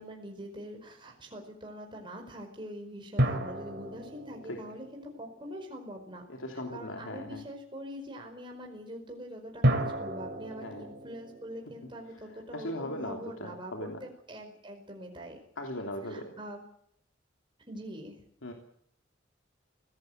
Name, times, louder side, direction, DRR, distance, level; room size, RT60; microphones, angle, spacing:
voice 1, 0.0-6.2 6.7-15.4 16.0-16.6 17.7-18.2, equal, 25° right, 2 dB, 4.9 m, -43 dB
sound 1, 3.2-6.0 9.6-13.0, right 1 dB, 60° right, 2.9 m, -33 dB
voice 2, 6.3-7.4 10.6-10.9 12.5-14.0 15.6-16.3 18.4-18.5, left 1 dB, 85° left, 2 dB, 3.0 m, -38 dB
24.5 x 17.5 x 7.9 m, 0.67 s
head